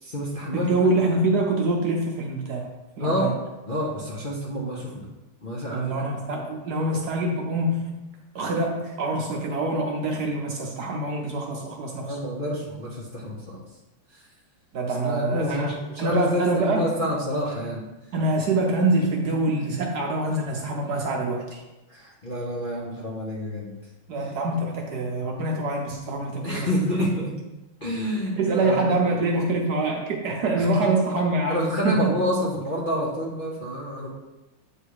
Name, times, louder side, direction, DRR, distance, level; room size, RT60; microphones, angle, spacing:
voice 1, 0.0-0.7 3.0-3.3 3.7-5.1 5.4-5.9 12.1-13.6 14.1-14.2 15.0-17.9 21.9-23.7 26.4-27.4 27.8-28.9 30.6-30.9 31.5-34.1, equal, 40° left, -5 dB, 0.7 m, -28 dB
voice 2, 0.5-2.7 3.0-3.3 5.7-7.9 8.3-12.2 14.7-15.7 16.0-16.9 18.1-21.6 24.1-26.7 27.0-27.1 28.4-32.1, right 2 dB, 65° right, 1 dB, 1.1 m, -25 dB
8.6 x 3.3 x 4.7 m, 1.0 s
omnidirectional pair, 2.3 m